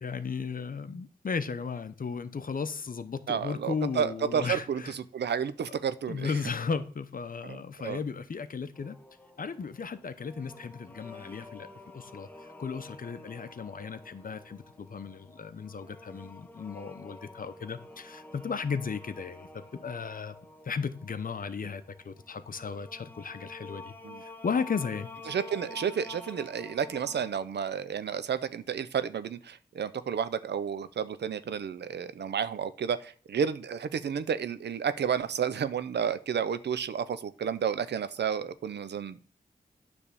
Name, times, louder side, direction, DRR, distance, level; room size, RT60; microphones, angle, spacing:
voice 1, 0.0-4.9 6.1-8.9 9.4-11.7 11.9-12.3 12.6-20.4 20.6-23.9 24.2-25.1, left 5 dB, 55° left, 0.8 m, -35 dB
voice 2, 3.3-6.3 7.4-8.0 24.0-24.2 25.3-39.3, right 7 dB, 90° right, 0.5 m, -31 dB
sound 1, 8.7-27.3, left 2 dB, 10° left, 0.8 m, -49 dB
9.7 x 3.5 x 6.8 m
wide cardioid pair, 75°, 17 cm